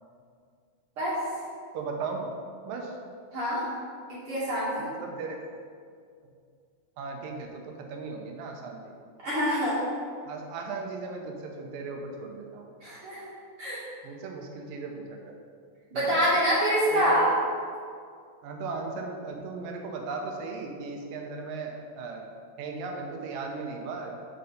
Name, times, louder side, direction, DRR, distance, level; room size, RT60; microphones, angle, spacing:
voice 1, 1.7-2.3 2.7-2.9 4.8-5.4 7.0-7.6 7.9-8.8 10.2-12.7 14.0-15.3 15.9-16.2 16.9-17.2 18.4-22.3 22.6-24.2, right 4 dB, 75° right, 2 dB, 2.4 m, -37 dB
voice 2, 3.3-3.6 4.1-4.9 9.2-9.8 12.8-13.2 13.6-13.8 15.9-17.3, equal, 45° right, -9 dB, 2.1 m, -26 dB
6.9 x 5.4 x 5.1 m, 2.2 s
omnidirectional pair, 4.2 m